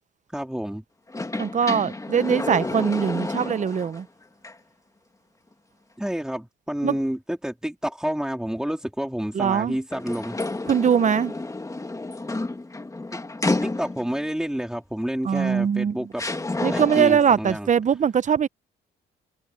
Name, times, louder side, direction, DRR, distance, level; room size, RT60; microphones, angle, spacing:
voice 1, 0.3-0.8 6.0-10.4 13.1-13.2 13.6-16.2 16.6-17.7, equal, 5° right, 3.0 m, -29 dB
sound 1, 1.1-4.0 4.4-4.5 9.9-14.2 15.4-15.5 16.2-17.3, left 2 dB, 15° left, 1.7 m, -30 dB
voice 2, 1.4-4.1 6.8-7.0 9.3-9.8 10.7-11.3 15.2-16.1 16.6-18.5, right 7 dB, 40° right, 0.7 m, -21 dB
cardioid pair, 90°, 20 cm